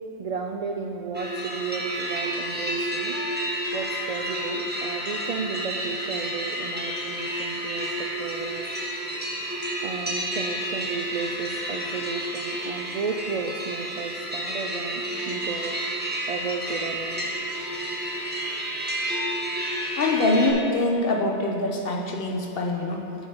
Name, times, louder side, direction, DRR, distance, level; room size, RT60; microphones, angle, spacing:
voice 1, 0.2-3.2 3.7-8.6 9.8-15.7 16.3-17.3, right 5 dB, 60° right, 3 dB, 0.4 m, -33 dB
sound 1, 1.1-20.5, right 1 dB, 10° right, 1.0 m, -30 dB
voice 2, 20.0-23.0, left 2 dB, 60° left, 1 dB, 1.1 m, -24 dB
7.8 x 6.5 x 5.7 m, 2.6 s
omnidirectional pair, 1.1 m